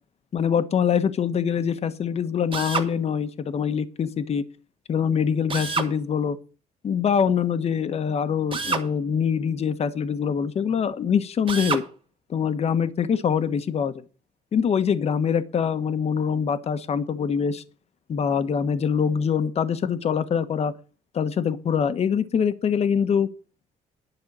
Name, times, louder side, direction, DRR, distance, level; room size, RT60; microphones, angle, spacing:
voice 1, 0.3-4.4 4.9-6.4 6.8-11.8 12.3-13.9 14.5-17.6 18.1-20.7 21.1-23.3, left 7 dB, 45° left, 12 dB, 1.2 m, -24 dB
Drill, 2.5-2.9 5.5-5.9 8.5-8.9 11.5-11.9, right 5 dB, 35° right, 2.1 m, -27 dB
11.0 x 5.6 x 8.7 m, 0.36 s
cardioid pair, 105°, 14 cm